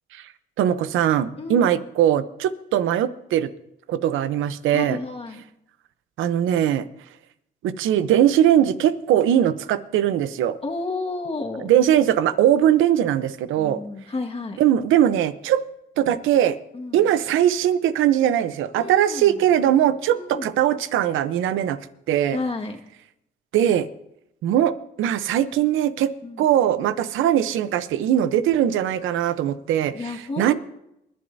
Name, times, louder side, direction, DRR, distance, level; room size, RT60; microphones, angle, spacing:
voice 1, 0.6-3.5 3.9-5.0 6.2-6.9 7.6-10.6 11.6-13.8 14.6-15.6 16.0-16.6 16.9-21.8 22.1-22.4 23.5-23.9 24.4-26.1 26.4-29.9 30.4-30.5, right 11 dB, 85° right, 13 dB, 0.8 m, -20 dB
voice 2, 1.4-1.8 4.7-5.4 10.6-11.7 13.6-14.6 16.7-17.0 18.8-19.4 20.1-20.5 22.3-22.8 26.2-26.5 29.9-30.5, left 3 dB, 30° left, 2 dB, 1.8 m, -31 dB
28.5 x 11.0 x 2.7 m, 0.83 s
cardioid pair, 90°, 20 cm